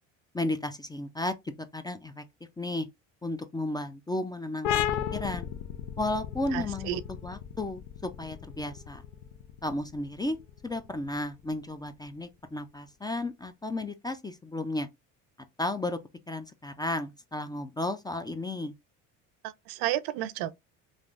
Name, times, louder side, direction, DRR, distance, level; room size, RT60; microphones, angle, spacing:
voice 1, 0.3-1.3 1.7-2.2 2.6-2.9 3.2-4.9 5.1-5.5 6.0-9.0 9.6-10.4 10.6-14.9 15.6-16.0 16.3-18.7, left 2 dB, 10° left, 0.4 m, -33 dB
sound 1, 4.6-11.9, left 10 dB, 70° left, 0.6 m, -35 dB
voice 2, 6.5-7.0 19.4-20.5, right 13 dB, 70° right, 0.5 m, -32 dB
3.3 x 2.5 x 2.4 m
supercardioid pair, 75°, 38 cm